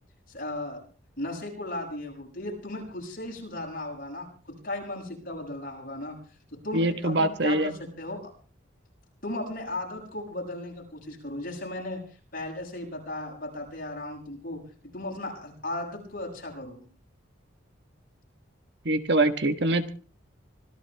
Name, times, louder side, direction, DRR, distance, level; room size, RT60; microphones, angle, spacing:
voice 1, 0.3-0.8 1.2-6.2 6.5-8.3 9.2-12.0 12.3-14.6 14.9-16.8, left 1 dB, 45° left, 0 dB, 7.6 m, -36 dB
voice 2, 6.7-7.7 18.8-19.9, right 2 dB, 55° right, 9 dB, 1.5 m, -24 dB
25.5 x 14.5 x 3.5 m, 0.39 s
head